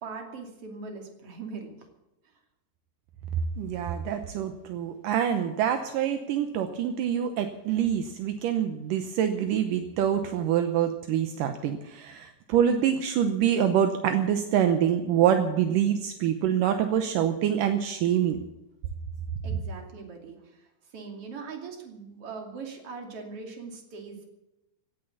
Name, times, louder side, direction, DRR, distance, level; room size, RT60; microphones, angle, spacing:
voice 1, 0.0-1.8 19.4-20.6 20.9-24.3, right 4 dB, 40° right, 3 dB, 3.1 m, -40 dB
voice 2, 3.6-18.4, right 9 dB, 75° right, 7 dB, 2.1 m, -26 dB
16.5 x 9.8 x 8.5 m, 0.92 s
omnidirectional pair, 4.8 m